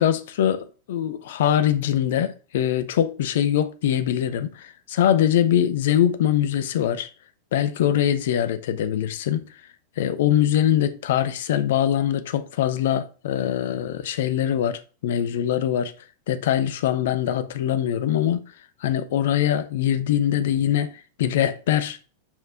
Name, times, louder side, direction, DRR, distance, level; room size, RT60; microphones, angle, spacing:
voice 1, 0.0-7.1 7.5-9.4 10.0-15.9 16.3-18.4 18.8-22.0, left 10 dB, 55° left, 0.8 m, -23 dB
5.8 x 4.5 x 5.7 m
figure-of-eight pair, 90°, 0 cm